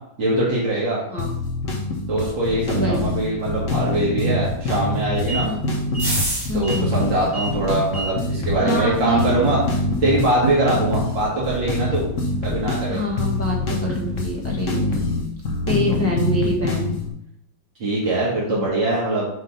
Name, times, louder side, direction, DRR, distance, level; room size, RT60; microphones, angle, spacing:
voice 1, 0.2-1.0 2.1-5.5 6.5-9.6 10.0-12.1 12.4-13.0 15.9-16.0 17.8-19.3, right 2 dB, 70° right, -6 dB, 2.3 m, -22 dB
sound 1, 1.2-17.1, left 2 dB, 45° left, 1.3 m, -25 dB
voice 2, 2.8-3.1 5.4-5.6 6.5-6.9 8.6-9.5 12.9-14.9 15.7-16.9 18.5-18.6, left 1 dB, 10° left, -4 dB, 0.9 m, -25 dB
sound 2, 4.6-14.7, right 1 dB, 10° right, 1.8 m, -33 dB
6.4 x 3.6 x 5.4 m, 0.79 s
omnidirectional pair, 2.1 m